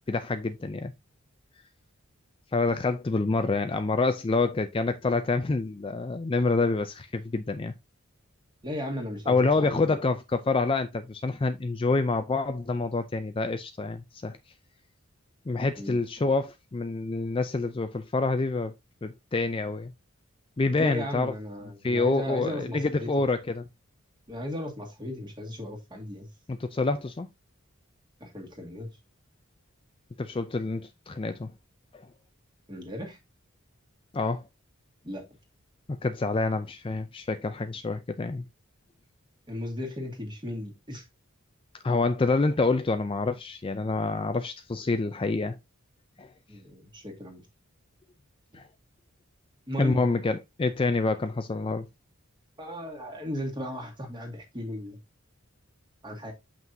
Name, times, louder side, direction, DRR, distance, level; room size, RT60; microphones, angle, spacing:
voice 1, 0.1-0.9 2.5-7.7 9.3-14.4 15.5-18.7 19.0-19.9 20.6-21.3 21.8-23.6 26.5-27.3 30.2-31.5 31.9-32.1 34.1-34.4 35.9-38.4 41.8-45.6 46.2-46.3 48.5-48.7 49.8-51.9, left 3 dB, 25° left, 0.4 m, -27 dB
voice 2, 8.6-10.0 15.8-16.0 20.8-23.1 24.3-26.3 28.2-28.9 32.7-33.2 35.0-35.2 39.5-41.0 46.5-47.4 49.7-50.0 52.6-55.0 56.0-56.3, left 1 dB, 20° right, 2.0 m, -36 dB
7.5 x 5.9 x 2.7 m
head